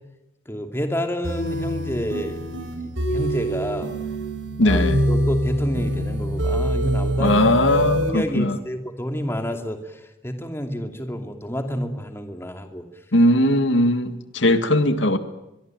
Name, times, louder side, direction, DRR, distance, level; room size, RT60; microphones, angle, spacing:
voice 1, 0.5-2.7 3.1-3.9 4.6-7.4 8.0-9.8 10.2-12.8, equal, 15° left, 5 dB, 2.6 m, -29 dB
sound 1, 1.2-8.1, right 1 dB, 80° right, 7.3 m, -24 dB
voice 2, 4.6-5.0 7.2-8.6 13.1-15.2, left 1 dB, 80° left, 9 dB, 2.0 m, -19 dB
24.0 x 23.0 x 9.1 m, 0.93 s
head